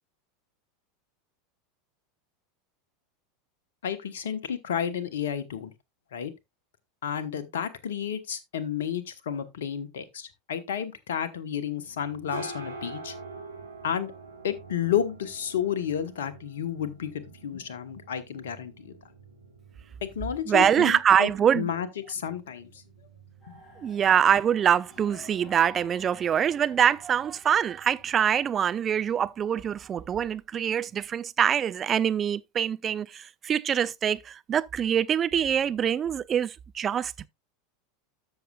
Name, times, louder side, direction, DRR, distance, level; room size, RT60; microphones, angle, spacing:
voice 1, 3.8-5.7 6.1-6.3 7.0-13.1 13.8-14.1 14.4-18.9 20.0-21.3 21.5-22.7 23.5-23.6, left 9 dB, 65° left, 1.1 m, -31 dB
sound 1, 11.8-29.3, right 3 dB, 80° right, 1.8 m, -47 dB
voice 2, 20.5-21.7 23.8-37.3, right 8 dB, 30° right, 0.4 m, -24 dB
sound 2, 23.4-28.3, left 2 dB, 35° left, 2.3 m, -52 dB
13.0 x 6.5 x 2.3 m
figure-of-eight pair, 80°, 0 cm